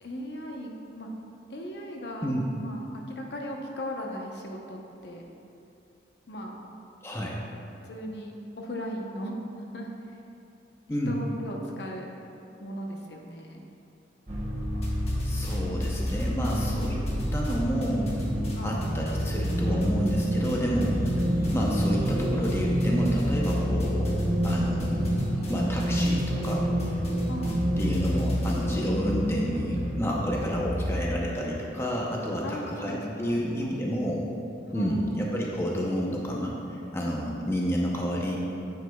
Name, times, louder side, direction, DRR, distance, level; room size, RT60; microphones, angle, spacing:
voice 1, 0.0-1.1 1.5-5.3 6.3-6.6 7.8-10.2 11.1-12.1 12.6-13.6 18.6-18.9 27.3-27.6 32.4-33.8 34.7-35.1, equal, 60° left, 0 dB, 0.8 m, -38 dB
voice 2, 7.0-7.4 10.9-11.2 15.2-17.0 17.3-18.1 18.6-21.0 21.5-25.1 25.5-26.6 27.8-34.3 34.7-38.4, equal, 15° left, -3 dB, 0.7 m, -30 dB
sound 1, 14.3-31.0, equal, 35° right, 0.9 m, -28 dB
sound 2, 14.8-15.6 15.8-19.5 19.8-20.5 20.8-28.6, equal, 35° left, 1.3 m, -36 dB
9.2 x 8.1 x 2.3 m, 2.7 s
head